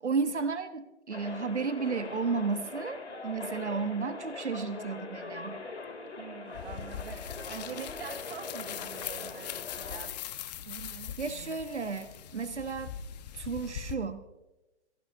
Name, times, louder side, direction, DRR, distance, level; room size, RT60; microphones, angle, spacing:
voice 1, 0.0-5.6 11.2-12.9 13.3-14.2, right 4 dB, 85° right, 11 dB, 1.2 m, -33 dB
sound 1, 1.1-10.1, left 3 dB, 80° left, 2.9 m, -42 dB
voice 2, 6.2-10.2 10.7-11.6, right 8 dB, 55° right, 10 dB, 1.2 m, -45 dB
sound 2, 6.5-13.9, left 10 dB, 40° left, 1.1 m, -41 dB
28.5 x 17.0 x 2.7 m, 1.0 s
figure-of-eight pair, 130°, 34 cm